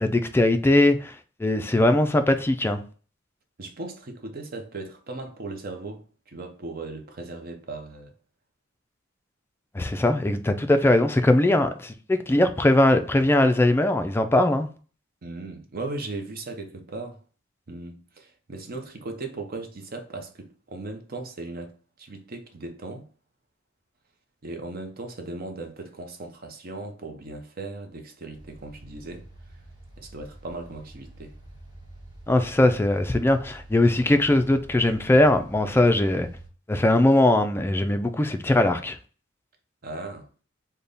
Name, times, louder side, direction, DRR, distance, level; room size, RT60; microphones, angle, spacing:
voice 1, 0.0-2.8 9.7-14.7 32.3-36.3 36.7-39.0, left 1 dB, 10° left, 0.3 m, -20 dB
voice 2, 3.6-8.1 15.2-17.2 17.7-23.0 24.4-29.3 30.0-31.4 39.8-40.3, right 2 dB, 50° right, 0.7 m, -37 dB
sound 1, 28.3-36.5, right 1 dB, 20° right, 1.2 m, -46 dB
3.4 x 2.2 x 3.9 m
head